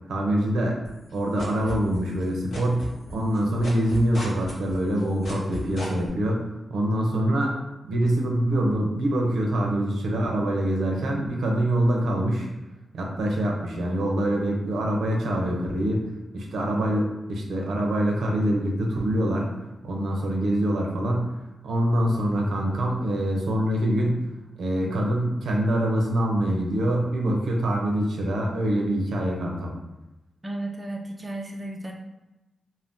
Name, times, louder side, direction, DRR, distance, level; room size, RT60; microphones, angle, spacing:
voice 1, 0.1-0.8 1.1-2.8 3.1-7.6 7.9-12.5 12.9-16.0 16.3-19.5 19.8-21.3 21.6-24.2 24.6-29.7, right 1 dB, 80° right, 0 dB, 0.6 m, -25 dB
sound 1, 0.8-2.2 2.5-6.1, left 1 dB, 75° left, 0.8 m, -36 dB
voice 2, 30.4-31.9, right 1 dB, 15° right, 1 dB, 0.3 m, -34 dB
2.6 x 2.1 x 3.4 m, 1.0 s
cardioid pair, 100°, 0 cm